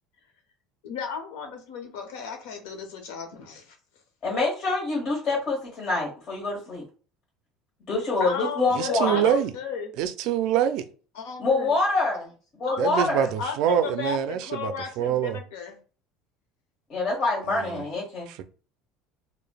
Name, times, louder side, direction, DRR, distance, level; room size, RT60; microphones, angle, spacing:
voice 1, 0.8-3.8 8.2-9.9 11.1-11.7 12.7-12.8 13.4-15.8, left 6 dB, 85° left, 0.8 m, -34 dB
voice 2, 4.2-6.8 7.9-9.2 11.4-12.3 12.6-13.3 16.9-18.3, left 3 dB, 45° left, 1.1 m, -26 dB
voice 3, 8.7-9.5 10.0-10.9 12.8-15.4 17.4-17.8 18.3-18.4, right 9 dB, 65° right, 0.3 m, -25 dB
3.2 x 2.1 x 2.3 m
supercardioid pair, 125°, 0 cm